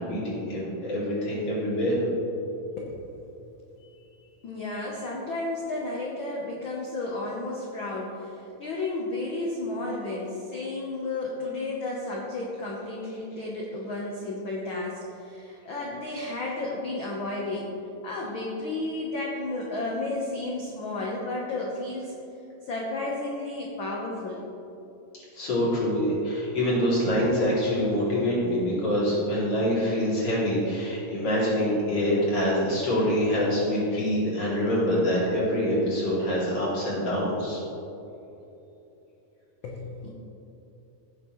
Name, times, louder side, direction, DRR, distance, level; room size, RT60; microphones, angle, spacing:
voice 1, 0.0-2.0 25.3-37.6, equal, 45° left, -7 dB, 3.7 m, -25 dB
voice 2, 4.4-17.7 18.0-22.2 22.6-24.4 39.6-40.1, left 2 dB, 60° left, -3 dB, 1.3 m, -32 dB
16.0 x 8.4 x 3.2 m, 2.9 s
omnidirectional pair, 3.8 m